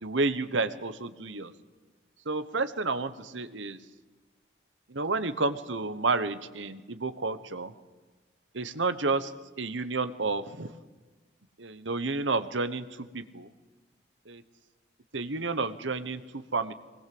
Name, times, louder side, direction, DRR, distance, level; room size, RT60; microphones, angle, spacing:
voice 1, 0.0-1.5 2.3-3.8 4.9-7.7 8.5-9.3 9.6-10.7 11.6-12.9 13.1-13.5 14.3-14.4 15.1-16.2 16.5-16.7, right 3 dB, 80° right, 12 dB, 1.2 m, -30 dB
21.5 x 20.0 x 7.9 m, 1.3 s
head